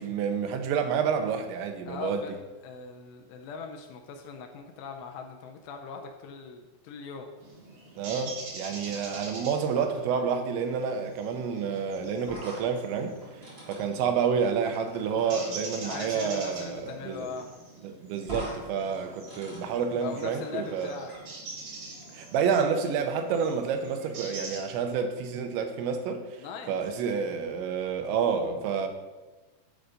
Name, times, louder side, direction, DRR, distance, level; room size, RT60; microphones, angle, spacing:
voice 1, 0.0-2.2 8.0-13.2 13.7-17.3 17.8-20.9 22.1-26.4 26.7-28.9, right 6 dB, 80° right, 3.1 m, -29 dB
voice 2, 1.9-2.3 2.6-7.3 15.8-17.5 20.0-21.1 26.4-26.8, left 5 dB, 80° left, 2.7 m, -40 dB
sound 1, 7.4-24.6, right 2 dB, 50° right, 2.8 m, -45 dB
sound 2, 12.2-15.5 17.0-17.1 17.4-17.5 18.2-18.6 18.9-21.2, equal, 15° right, 2.3 m, -44 dB
11.5 x 3.9 x 5.0 m
omnidirectional pair, 5.3 m